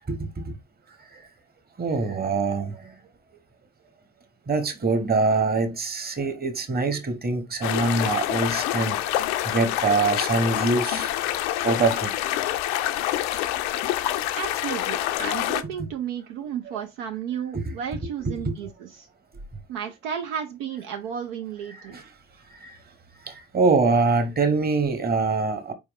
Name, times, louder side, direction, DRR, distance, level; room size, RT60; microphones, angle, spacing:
voice 1, 1.8-2.8 4.5-9.0 9.4-11.1 11.6-12.1 16.7-16.8 17.5-17.6 18.4-18.5 21.9-22.0 22.6-22.7 23.3-25.7, right 3 dB, 25° right, 1.3 m, -24 dB
sound 1, 7.6-15.6, left 13 dB, 65° left, 0.6 m, -26 dB
voice 2, 14.3-19.1 19.7-22.0, right 8 dB, 65° right, 0.7 m, -33 dB
4.5 x 3.6 x 3.1 m
figure-of-eight pair, 55°, 37 cm